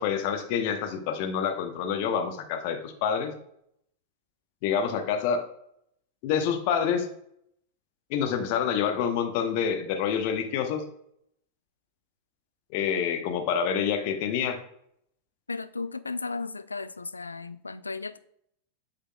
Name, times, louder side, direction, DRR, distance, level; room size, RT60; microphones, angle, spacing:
voice 1, 0.0-3.3 4.6-5.4 6.2-7.1 8.1-10.8 12.7-14.6, left 7 dB, 45° left, 5 dB, 0.9 m, -27 dB
voice 2, 15.5-18.2, left 4 dB, 80° left, 13 dB, 0.3 m, -35 dB
11.0 x 3.9 x 2.3 m, 0.71 s
figure-of-eight pair, 90°, 0 cm